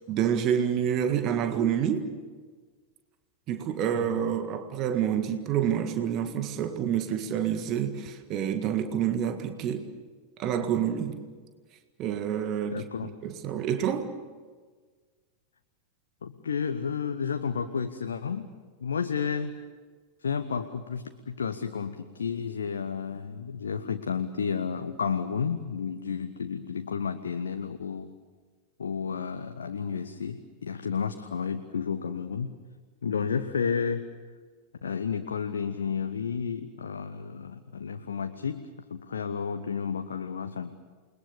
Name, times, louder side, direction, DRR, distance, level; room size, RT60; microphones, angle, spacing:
voice 1, 0.1-2.1 3.5-9.8 10.4-11.2 12.0-12.9 13.2-14.1, right 9 dB, 35° right, 1.8 m, -28 dB
voice 2, 12.7-13.2 16.2-18.5 18.8-19.5 20.2-28.1 28.8-32.5 33.0-34.1 34.8-40.7, left 6 dB, 70° left, 1.1 m, -31 dB
29.0 x 21.0 x 7.0 m
figure-of-eight pair, 90°, 0 cm